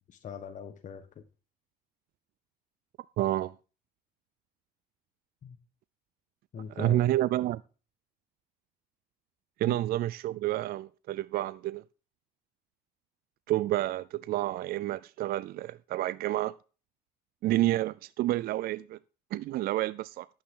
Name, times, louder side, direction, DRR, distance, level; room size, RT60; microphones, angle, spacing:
voice 1, 0.1-1.2 5.4-5.6 6.5-7.0 9.7-9.8, left 7 dB, 45° left, 1.3 m, -42 dB
voice 2, 3.2-3.5 6.8-7.6 9.6-11.8 13.5-16.5 17.4-19.0 19.3-20.3, right 15 dB, 65° right, 0.4 m, -29 dB
11.0 x 8.8 x 3.8 m
cardioid pair, 110°, 17 cm